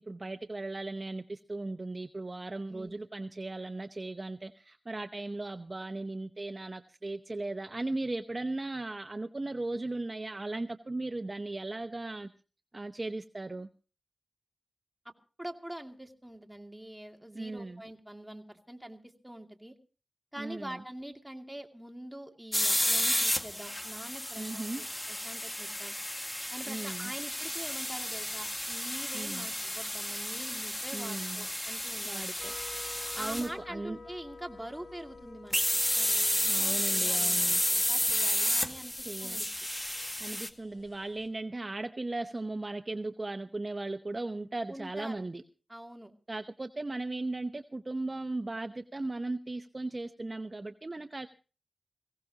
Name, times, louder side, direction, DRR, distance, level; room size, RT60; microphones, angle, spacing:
voice 1, 0.0-12.3 12.7-13.7 17.3-17.8 20.4-20.8 24.4-24.8 26.7-27.1 29.1-29.5 30.9-31.5 32.0-32.5 33.2-34.0 36.5-37.6 39.0-39.4 40.2-45.4 46.3-51.3, right 2 dB, 35° right, 9 dB, 0.8 m, -37 dB
voice 2, 2.7-3.0 15.4-19.7 20.3-25.9 26.5-32.3 33.2-35.6 35.9-39.5 44.7-45.3 45.7-46.1, right 1 dB, 10° right, 4 dB, 2.5 m, -45 dB
sound 1, 22.5-33.5 35.5-40.5, left 1 dB, 15° left, 1.8 m, -31 dB
sound 2, 32.4-41.3, left 3 dB, 65° left, 3.4 m, -51 dB
21.5 x 17.0 x 2.9 m, 0.36 s
cardioid pair, 50°, 0 cm